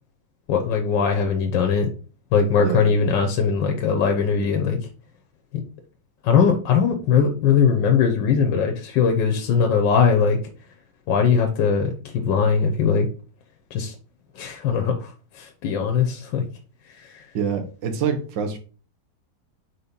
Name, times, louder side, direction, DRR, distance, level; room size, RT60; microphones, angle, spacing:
voice 1, 0.5-1.9 2.3-4.8 6.2-10.4 11.1-13.1 13.7-13.9 14.4-15.1 15.4-16.4, left 6 dB, 90° left, 3 dB, 1.5 m, -20 dB
voice 2, 17.3-18.6, right 6 dB, 85° right, 7 dB, 1.7 m, -26 dB
4.3 x 4.2 x 5.2 m, 0.38 s
omnidirectional pair, 1.9 m